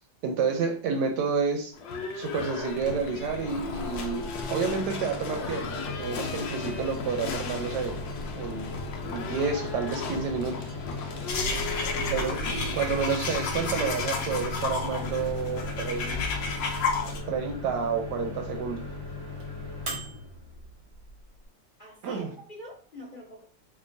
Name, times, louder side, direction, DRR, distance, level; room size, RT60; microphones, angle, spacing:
voice 1, 0.2-1.7 2.1-8.0 8.3-8.7 9.0-10.7 12.1-12.4 12.7-16.2 17.3-18.8 22.0-22.3, right 5 dB, 70° right, 3 dB, 1.1 m, -30 dB
Livestock farm animals working animals / Bell, 1.7-17.6, left 4 dB, 80° left, 1.3 m, -37 dB
Microwave oven, 2.7-21.4, left 3 dB, 45° right, 0.8 m, -38 dB
sound 1, 11.3-17.2, left 3 dB, 65° left, 1.0 m, -31 dB
voice 2, 11.5-12.1 21.8-23.4, left 1 dB, 40° left, -5 dB, 0.7 m, -45 dB
3.7 x 2.8 x 2.6 m, 0.43 s
omnidirectional pair, 2.0 m